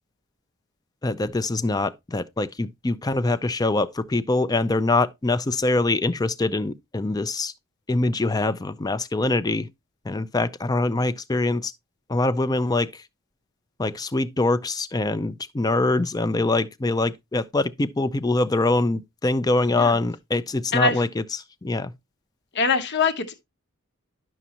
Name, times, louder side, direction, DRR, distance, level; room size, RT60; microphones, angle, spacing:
voice 1, 1.0-7.5 7.9-9.7 10.1-11.7 12.1-13.0 13.8-21.2 21.6-21.9, left 2 dB, 15° left, 0.4 m, -24 dB
voice 2, 20.7-21.0 22.5-23.4, left 4 dB, 50° left, 0.9 m, -23 dB
11.0 x 6.1 x 2.8 m
head